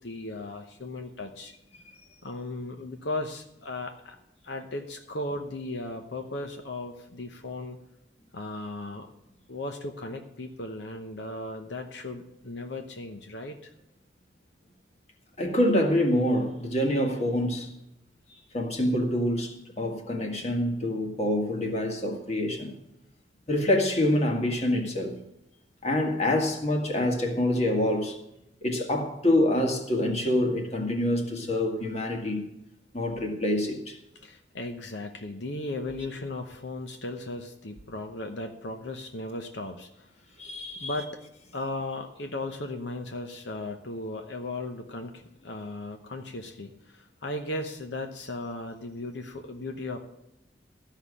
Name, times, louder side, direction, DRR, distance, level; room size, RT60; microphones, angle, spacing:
voice 1, 0.0-1.5 2.2-4.2 4.4-7.8 8.3-9.1 9.5-13.7 34.1-40.1 40.8-41.2 41.5-50.0, left 2 dB, 75° left, 0.9 m, -36 dB
voice 2, 15.4-17.7 18.5-22.7 23.5-25.2 25.8-28.2 28.6-32.4 32.9-34.0 40.4-41.0, left 1 dB, 35° left, 1.8 m, -26 dB
13.5 x 5.8 x 8.3 m
head